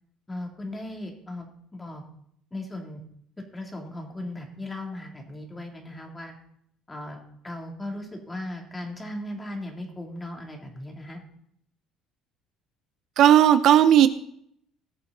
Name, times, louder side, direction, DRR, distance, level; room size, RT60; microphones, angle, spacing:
voice 1, 0.3-2.0 2.5-3.0 3.5-6.3 6.9-11.2, left 1 dB, 15° left, 1 dB, 2.8 m, -37 dB
voice 2, 13.2-14.1, right 10 dB, 60° right, 12 dB, 0.6 m, -15 dB
18.0 x 7.0 x 3.9 m, 0.68 s
cardioid pair, 120°, 0 cm